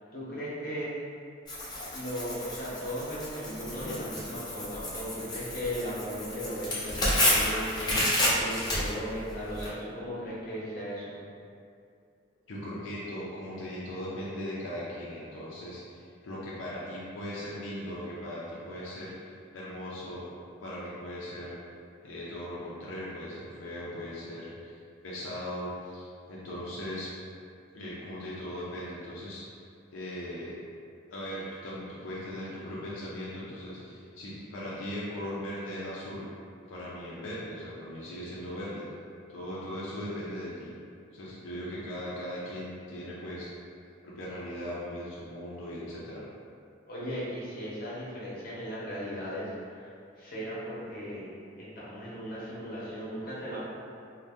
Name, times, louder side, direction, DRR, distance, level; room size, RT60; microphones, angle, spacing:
voice 1, 0.1-0.9 1.8-8.0 8.4-11.1 46.9-51.3 51.6-53.6, equal, 50° left, -8 dB, 0.8 m, -37 dB
Tearing, 1.5-9.7, left 1 dB, 20° left, 0.5 m, -30 dB
voice 2, 12.5-20.3 20.6-21.5 22.0-27.1 27.7-29.6 29.9-30.6 31.1-36.3 36.7-38.8 39.3-40.7 41.1-43.5 44.0-46.3, equal, 80° left, -7 dB, 0.5 m, -39 dB
2.6 x 2.1 x 3.4 m, 2.4 s
head